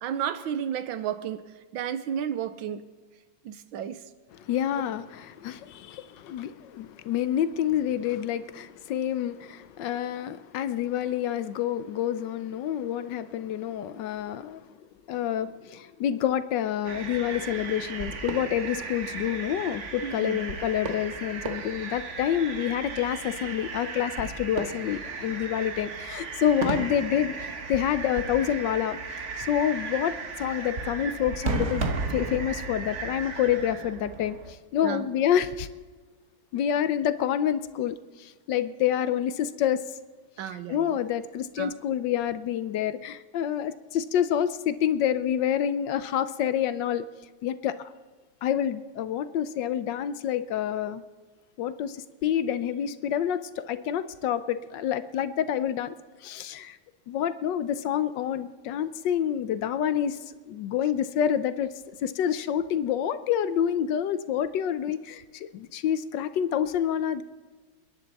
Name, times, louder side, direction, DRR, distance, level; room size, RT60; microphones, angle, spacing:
voice 1, 0.0-1.5 1.7-2.8 3.4-4.0 20.0-20.4 34.8-35.1 40.4-41.0 41.6-41.7, right 9 dB, 80° right, 12 dB, 1.6 m, -32 dB
voice 2, 4.3-14.7 15.1-27.3 27.7-31.8 32.1-35.7 36.5-39.8 40.5-47.1 47.4-47.9 48.4-51.0 51.6-55.9 56.2-56.8 57.1-60.2 60.5-61.7 62.0-67.2, left 10 dB, 70° left, 13 dB, 1.2 m, -28 dB
sound 1, 16.8-34.5, right 4 dB, 40° right, 1.4 m, -35 dB
29.5 x 10.5 x 4.1 m, 1.4 s
omnidirectional pair, 2.1 m